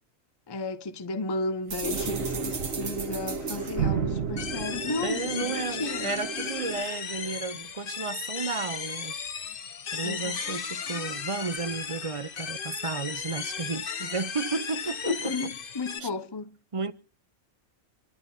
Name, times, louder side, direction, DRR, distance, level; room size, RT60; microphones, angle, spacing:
voice 1, 0.5-6.1 10.0-10.4 15.1-16.6, left 3 dB, 25° left, 0.7 m, -33 dB
sound 1, 1.7-5.6, right 7 dB, 85° right, 1.6 m, -33 dB
sound 2, 1.8-6.8, right 4 dB, 55° right, 1.9 m, -36 dB
sound 3, 4.4-16.0, left 6 dB, 50° left, 0.9 m, -35 dB
voice 2, 5.0-9.2 9.9-15.5 16.0-16.1 16.7-16.9, right 4 dB, 35° right, 0.6 m, -33 dB
26.5 x 12.0 x 2.7 m
omnidirectional pair, 1.3 m